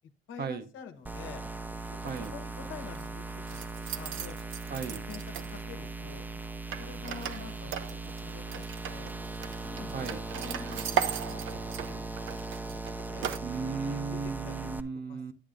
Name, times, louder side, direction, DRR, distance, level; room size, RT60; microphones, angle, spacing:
voice 1, 0.3-1.4 2.0-4.4 4.7-6.3 6.8-9.1 9.6-13.3 14.1-14.7 15.1-15.3, left 6 dB, 80° left, 7 dB, 1.1 m, -47 dB
sound 1, 1.1-14.8, right 2 dB, 10° right, 0.5 m, -39 dB
sound 2, 2.1-2.3 2.7-3.1 3.5-5.8 6.7-13.4, right 10 dB, 80° right, 0.6 m, -37 dB
voice 2, 4.7-5.0 9.9-10.2 13.4-15.3, right 5 dB, 55° right, 9 dB, 0.8 m, -35 dB
9.8 x 8.6 x 2.5 m, 0.37 s
cardioid pair, 90°, 20 cm